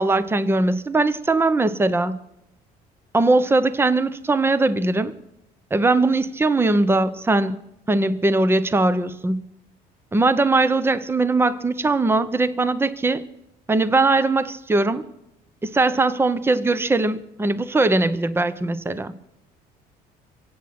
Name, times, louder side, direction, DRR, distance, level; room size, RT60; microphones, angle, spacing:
voice 1, 0.0-2.2 3.1-5.2 5.7-7.6 7.9-9.4 10.1-13.2 13.7-15.1 15.6-19.1, right 2 dB, 15° right, 0.8 m, -20 dB
24.0 x 8.6 x 5.9 m
cardioid pair, 110°, 17 cm